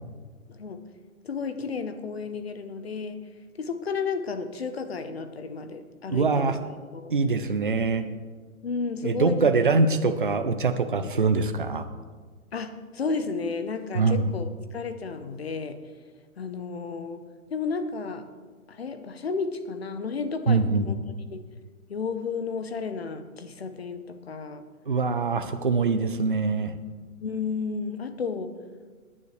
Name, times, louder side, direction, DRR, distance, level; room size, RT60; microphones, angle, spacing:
voice 1, 0.5-0.8 1.2-3.2 3.6-6.6 6.9-7.1 8.6-9.5 12.5-15.8 16.4-17.2 17.5-18.2 18.7-20.9 21.3-21.4 21.9-24.6 27.2-28.5, left 5 dB, 45° left, 10 dB, 0.9 m, -32 dB
voice 2, 6.1-6.6 7.1-8.0 9.0-11.8 13.9-14.2 20.5-20.9 24.9-26.7, right 4 dB, 40° right, 9 dB, 0.5 m, -23 dB
18.5 x 9.8 x 3.2 m, 1.5 s
hypercardioid pair, 180°, 43 cm